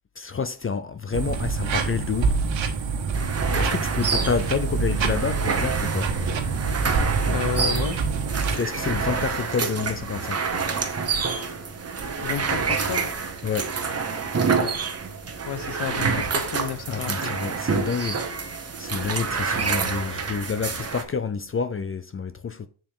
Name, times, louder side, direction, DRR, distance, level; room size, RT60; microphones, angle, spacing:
voice 1, 0.2-2.3 3.5-6.1 8.5-10.4 13.4-13.7 16.9-18.2 18.8-22.7, left 6 dB, 30° left, 0.4 m, -28 dB
sound 1, 1.1-8.6, right 4 dB, 75° right, 1.6 m, -26 dB
sound 2, 3.1-21.0, right 5 dB, 30° right, 1.2 m, -28 dB
voice 2, 7.3-8.0 12.2-13.1 15.5-17.3, left 9 dB, 60° left, 0.9 m, -31 dB
7.7 x 7.3 x 3.7 m
wide cardioid pair, 155°, 47 cm